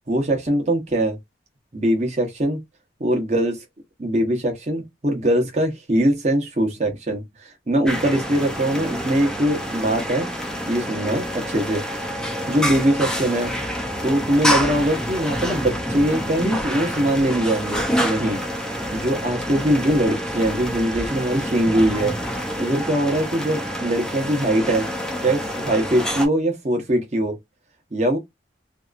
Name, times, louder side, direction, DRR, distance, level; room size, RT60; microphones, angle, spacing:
voice 1, 0.1-1.2 1.7-2.6 3.0-3.6 4.0-10.3 10.7-11.8 12.5-13.5 14.0-18.4 18.9-22.2 22.6-24.9 25.2-27.4 27.9-28.2, right 1 dB, 35° right, 0.9 m, -22 dB
sound 1, 7.9-26.3, equal, 5° left, 0.4 m, -27 dB
2.8 x 2.3 x 2.4 m
head